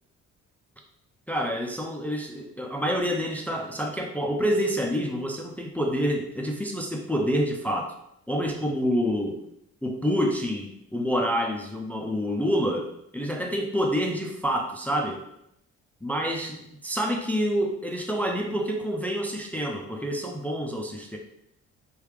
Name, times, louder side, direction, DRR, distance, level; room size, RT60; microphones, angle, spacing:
voice 1, 1.3-7.9 8.3-9.4 9.8-15.2 16.0-21.2, equal, 5° left, 1 dB, 0.3 m, -27 dB
3.2 x 2.3 x 3.2 m, 0.79 s
cardioid pair, 90°, 30 cm